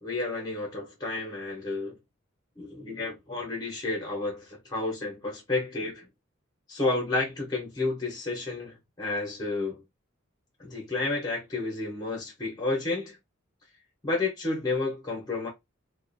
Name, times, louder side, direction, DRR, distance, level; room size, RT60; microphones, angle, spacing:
voice 1, 0.0-2.0 2.6-6.1 6.7-9.8 10.6-13.2 14.0-15.5, left 3 dB, 20° left, 0.7 m, -31 dB
2.4 x 2.1 x 2.5 m
head